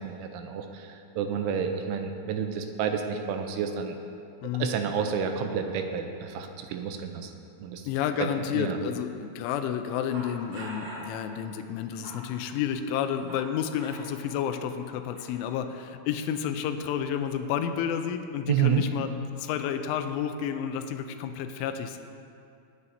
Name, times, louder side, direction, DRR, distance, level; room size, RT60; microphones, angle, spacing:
voice 1, 0.0-4.0 4.6-7.3 7.6-7.8 8.5-8.8 18.5-18.8, right 7 dB, 85° right, 5 dB, 3.0 m, -30 dB
voice 2, 7.9-22.0, left 8 dB, 85° left, 8 dB, 3.0 m, -30 dB
sound 1, 10.1-11.1 11.8-13.5 13.8-14.0 14.8-15.6, right 1 dB, 60° right, 4.5 m, -44 dB
20.5 x 9.7 x 2.8 m, 2.5 s
omnidirectional pair, 5.8 m